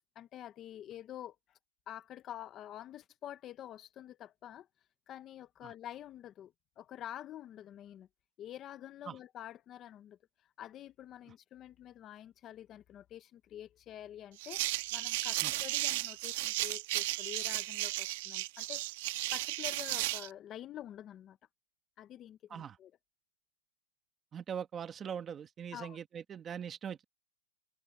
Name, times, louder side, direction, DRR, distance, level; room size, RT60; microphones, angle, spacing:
voice 1, 0.2-1.6 1.9-4.7 5.1-8.1 8.4-14.6 14.9-18.8 19.3-21.4 22.0-22.9 25.7-26.0, left 11 dB, 20° left, 0.6 m, -48 dB
sound 1, 14.4-20.3, right 18 dB, 45° right, 1.3 m, -34 dB
voice 2, 24.3-27.0, right 8 dB, 15° right, 1.3 m, -41 dB
supercardioid pair, 165°, 0 cm